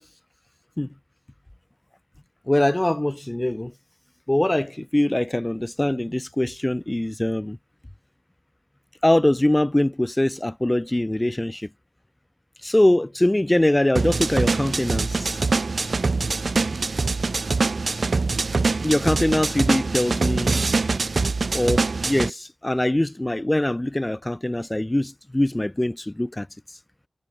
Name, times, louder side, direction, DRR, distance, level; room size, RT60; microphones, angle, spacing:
voice 1, 2.5-3.7 4.3-7.6 9.0-11.7 12.6-15.4 18.8-20.6 21.5-26.5, left 1 dB, 20° left, 3.7 m, -22 dB
sound 1, 14.0-22.3, right 3 dB, 70° right, 3.4 m, -24 dB
wide cardioid pair, 50°, 0 cm